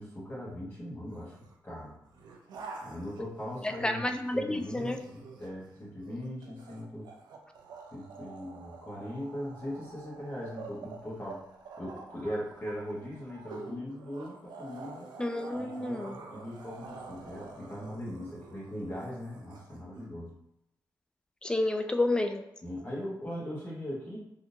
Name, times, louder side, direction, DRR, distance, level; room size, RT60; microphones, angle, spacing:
voice 1, 0.0-1.4 1.6-1.9 2.8-7.1 7.9-11.4 11.8-15.1 15.5-20.3 22.6-24.2, equal, 30° left, -7 dB, 1.2 m, -40 dB
sound 1, 1.1-1.5 2.0-4.1 4.5-20.1, right 4 dB, 85° right, 0.5 m, -48 dB
voice 2, 3.8-5.0 15.2-16.2 21.4-22.4, left 2 dB, 10° left, 6 dB, 0.3 m, -30 dB
3.6 x 2.6 x 2.6 m, 0.83 s
cardioid pair, 90°, 7 cm